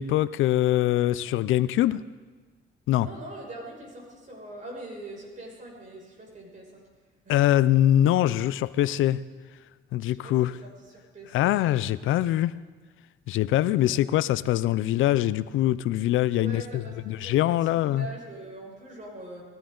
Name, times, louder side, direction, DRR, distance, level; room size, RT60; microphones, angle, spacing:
voice 1, 0.0-2.1 2.9-3.1 7.3-9.2 9.9-10.6 11.3-12.5 13.3-18.1, left 13 dB, 80° left, 0.5 m, -23 dB
voice 2, 3.0-6.8 7.2-7.5 10.1-11.5 13.7-14.0 16.3-19.4, right 1 dB, 40° right, 6.2 m, -43 dB
20.5 x 15.5 x 3.8 m
cardioid pair, 90°, 20 cm